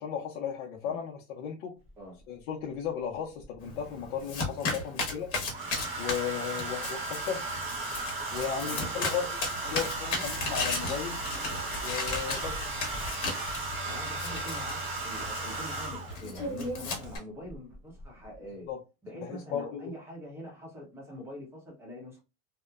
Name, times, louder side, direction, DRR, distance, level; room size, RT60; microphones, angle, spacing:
voice 1, 0.0-1.7 2.3-5.3 6.0-7.4 8.3-9.3 9.7-9.8 10.2-11.2 11.8-12.7 18.7-18.8 19.2-19.9, left 8 dB, 55° left, 0.7 m, -35 dB
Domestic sounds home sounds, 1.9-2.0 3.4-4.1 5.5-16.2 17.5-17.7 18.0-18.4, right 3 dB, 30° right, 0.9 m, -36 dB
Domestic sounds home sounds 2, 3.6-17.2, left 3 dB, 35° left, 1.1 m, -36 dB
sound 1, 7.6-17.3, right 3 dB, 65° right, 1.1 m, -51 dB
voice 2, 8.6-10.3 11.3-11.4 13.8-18.7 19.0-22.2, left 1 dB, 5° right, 0.7 m, -44 dB
2.8 x 2.1 x 2.2 m
supercardioid pair, 155°, 43 cm